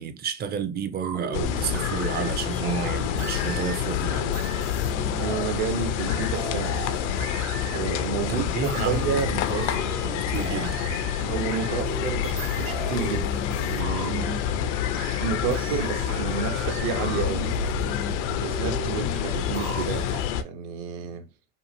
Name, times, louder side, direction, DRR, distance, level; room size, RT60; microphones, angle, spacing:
voice 1, 0.0-4.4 8.3-10.8, right 7 dB, 30° right, 0.4 m, -31 dB
sound 1, 1.0-4.0 4.3-5.8 6.0-20.2, right 4 dB, 85° right, 1.0 m, -37 dB
sound 2, 1.3-20.4, left 9 dB, 75° left, 0.5 m, -28 dB
voice 2, 5.2-7.0 7.6-9.3 11.2-14.4 15.2-17.5 18.3-21.2, right 7 dB, 65° right, 0.7 m, -31 dB
2.8 x 2.5 x 2.5 m
hypercardioid pair, 80°, 36 cm